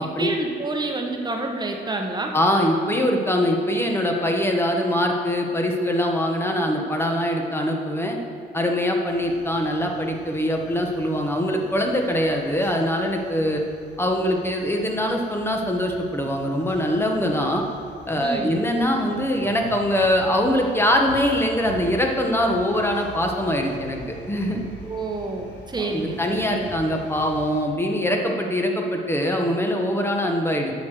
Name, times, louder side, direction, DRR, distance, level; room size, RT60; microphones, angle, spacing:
voice 1, 0.0-2.3 18.2-18.6 24.8-26.7, right 2 dB, 20° right, 2 dB, 1.3 m, -28 dB
voice 2, 2.3-8.2 8.5-13.6 14.0-17.6 18.1-24.0 24.3-24.6 25.8-30.7, equal, 10° left, 1 dB, 1.3 m, -23 dB
sound 1, 9.0-27.6, equal, 65° left, 2.5 m, -44 dB
8.4 x 6.4 x 6.1 m, 2.4 s
cardioid pair, 90°, 20 cm